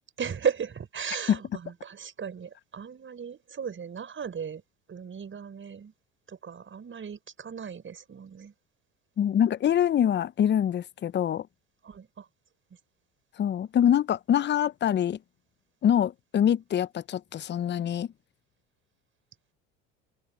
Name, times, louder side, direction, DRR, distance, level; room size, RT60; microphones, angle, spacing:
voice 1, 0.2-4.6 4.9-5.9 6.3-8.5 11.8-12.2, right 7 dB, 35° right, 6.3 m, -36 dB
voice 2, 9.2-11.5 13.4-15.2 15.8-18.1, left 9 dB, 30° left, 0.7 m, -24 dB
hypercardioid pair, 80°, 36 cm